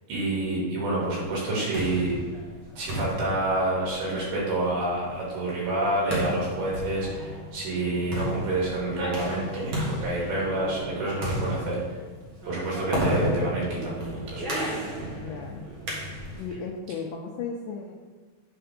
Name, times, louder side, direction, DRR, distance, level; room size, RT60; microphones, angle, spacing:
voice 1, 0.1-2.2 2.8-12.0 12.4-14.5, right 2 dB, 80° right, -6 dB, 4.4 m, -28 dB
sound 1, 1.4-16.6, equal, 45° right, 1.8 m, -33 dB
voice 2, 15.2-15.7 16.4-17.9, left 5 dB, 80° left, 1 dB, 1.9 m, -35 dB
7.8 x 4.6 x 5.0 m, 1.3 s
omnidirectional pair, 4.4 m